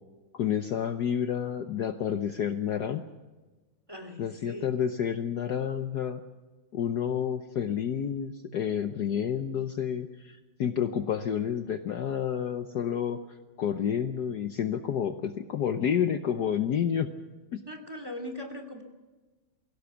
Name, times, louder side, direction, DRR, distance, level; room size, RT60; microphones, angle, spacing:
voice 1, 0.3-3.0 4.2-6.2 6.7-13.2 13.6-17.1 17.5-17.6, left 8 dB, 60° left, 8 dB, 1.3 m, -29 dB
voice 2, 3.9-4.7 17.7-18.8, left 1 dB, 10° right, 5 dB, 2.4 m, -40 dB
23.5 x 16.5 x 7.1 m, 1.2 s
omnidirectional pair, 2.2 m